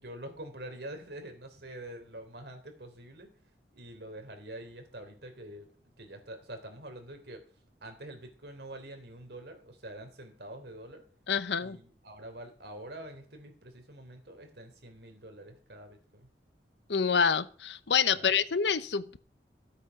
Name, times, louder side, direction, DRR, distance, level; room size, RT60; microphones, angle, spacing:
voice 1, 0.0-3.3 3.7-5.7 6.0-7.4 7.8-11.0 11.6-16.3 18.2-18.3, right 1 dB, 70° right, 5 dB, 3.4 m, -46 dB
voice 2, 11.3-11.8 16.9-19.2, left 6 dB, 80° left, 15 dB, 0.8 m, -27 dB
14.0 x 8.3 x 5.9 m, 0.43 s
head